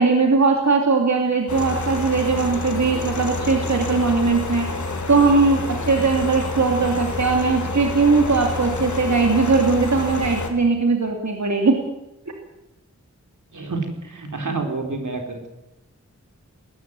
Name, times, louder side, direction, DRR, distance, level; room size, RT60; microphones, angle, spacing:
voice 1, 0.0-4.7 5.1-11.8, right 4 dB, 65° right, 2 dB, 2.8 m, -19 dB
sound 1, 1.5-10.5, left 3 dB, 75° left, 3.4 m, -28 dB
voice 2, 13.5-15.5, right 3 dB, 85° right, 4 dB, 4.0 m, -28 dB
19.5 x 14.0 x 9.6 m, 0.93 s
wide cardioid pair, 55°, 30 cm